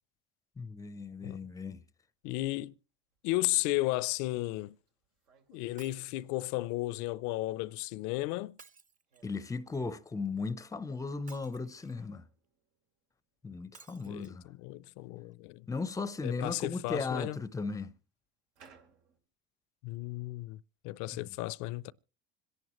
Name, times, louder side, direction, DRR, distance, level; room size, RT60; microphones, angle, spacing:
voice 1, 0.6-1.8 9.2-12.3 13.4-14.5 15.7-17.9 21.1-21.2, left 4 dB, 10° left, 0.6 m, -36 dB
sound 1, 1.9-2.0 3.1-3.2 3.6-3.7 4.3-6.2 7.6-8.3 9.1-9.9 11.9-13.4 13.6-13.7 15.1-15.2 15.9-16.0 16.5-17.4 18.5-19.2, right 6 dB, 80° right, 2.8 m, -64 dB
voice 2, 2.2-2.7 3.2-4.7 5.5-8.6 14.1-15.7 16.2-17.4 19.8-20.6 20.8-21.9, left 18 dB, 65° left, 0.6 m, -34 dB
Shatter, 5.8-6.2 8.6-9.5 11.3-12.1 13.7-14.3 15.0-15.1 15.3-15.4, right 5 dB, 25° right, 0.8 m, -57 dB
26.0 x 11.0 x 3.0 m
supercardioid pair, 110°, 31 cm